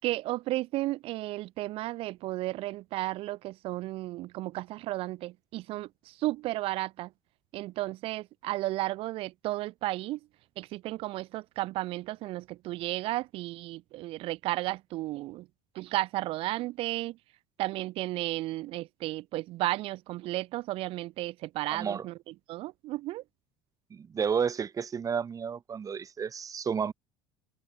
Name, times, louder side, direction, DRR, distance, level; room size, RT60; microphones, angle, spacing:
voice 1, 0.0-7.1 7.5-10.2 10.6-15.5 15.7-17.2 17.6-22.2 22.5-23.2, right 17 dB, 60° right, 5.7 m, -33 dB
voice 2, 21.7-22.1 23.9-26.9, right 6 dB, 35° right, 4.8 m, -31 dB
hypercardioid pair, 80°, 11 cm